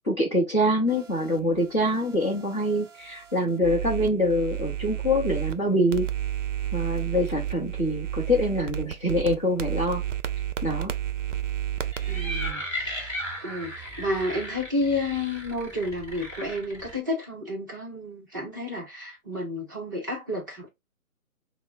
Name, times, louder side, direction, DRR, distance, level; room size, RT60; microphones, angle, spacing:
voice 1, 0.1-6.1 6.7-10.0 10.6-10.9, equal, 20° left, 0.8 m, -25 dB
sound 1, 0.9-5.6 5.9-12.5, right 11 dB, 60° right, 0.6 m, -32 dB
sound 2, 11.8-17.0, left 1 dB, 5° left, 1.2 m, -36 dB
voice 2, 12.1-13.1 13.4-20.7, left 1 dB, 15° right, 0.6 m, -31 dB
5.9 x 2.1 x 2.7 m
hypercardioid pair, 155°, 44 cm